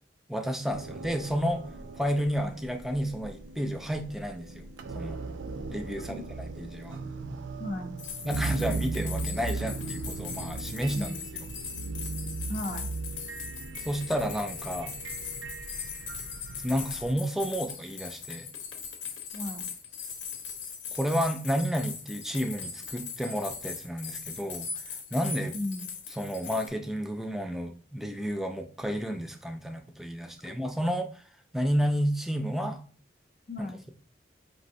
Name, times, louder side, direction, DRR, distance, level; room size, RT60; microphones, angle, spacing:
voice 1, 0.3-1.7 2.0-4.7 4.9-5.2 5.7-7.0 8.2-11.5 13.8-14.9 16.6-18.5 20.9-24.7 25.1-25.6 26.2-31.2 31.5-32.8 33.6-33.9, equal, ahead, 6 dB, 0.3 m, -31 dB
sound 1, 0.7-17.2, right 3 dB, 80° right, 0.4 m, -38 dB
voice 2, 7.6-8.0 9.3-9.4 10.9-11.2 12.5-12.9 19.3-19.7 25.5-25.8 33.5-33.8, left 1 dB, 40° left, 0 dB, 0.6 m, -35 dB
sound 2, 8.0-26.7, left 6 dB, 85° left, 0.9 m, -40 dB
5.2 x 3.1 x 2.7 m, 0.42 s
head